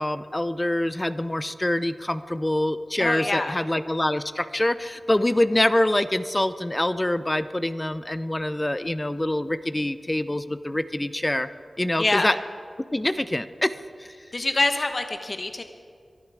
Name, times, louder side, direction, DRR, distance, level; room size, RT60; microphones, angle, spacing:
voice 1, 0.0-11.5 11.8-12.4 12.9-14.1, left 1 dB, 20° left, 12 dB, 0.6 m, -25 dB
voice 2, 3.0-3.6 12.0-12.3 14.3-15.6, left 2 dB, 50° left, 7 dB, 1.0 m, -25 dB
23.0 x 12.0 x 4.9 m, 2.1 s
wide cardioid pair, 60°, 0 cm